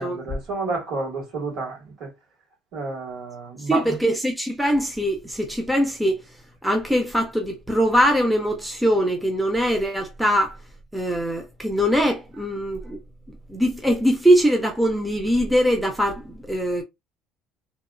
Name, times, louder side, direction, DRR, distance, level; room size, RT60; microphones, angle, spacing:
voice 1, 0.0-2.1 2.7-4.0, right 3 dB, 50° right, 1.7 m, -30 dB
voice 2, 3.6-6.2 6.6-10.6 10.9-13.0 13.5-16.8, equal, 5° right, 0.4 m, -22 dB
2.9 x 2.3 x 2.4 m
cardioid pair, 165°, 0 cm